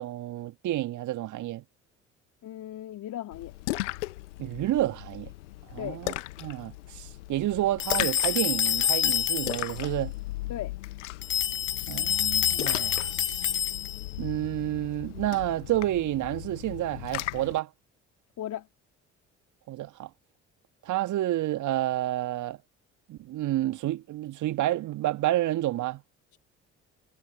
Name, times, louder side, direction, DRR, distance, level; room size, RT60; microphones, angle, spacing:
voice 1, 0.0-1.6 4.4-5.3 5.7-6.1 6.4-10.1 11.9-12.9 13.3-13.4 14.2-17.7 19.7-20.1 20.8-22.6 23.1-26.0, right 14 dB, 55° right, 2.0 m, -29 dB
voice 2, 2.4-3.5 5.8-6.0 10.5-10.7 18.4-18.7 26.3-26.4, left 12 dB, 55° left, 4.0 m, -37 dB
Splash splatter, 3.3-17.6, left 18 dB, 75° left, 1.6 m, -37 dB
sound 1, 7.8-9.8 11.2-14.1, left 10 dB, 35° left, 0.8 m, -27 dB
figure-of-eight pair, 50°, 36 cm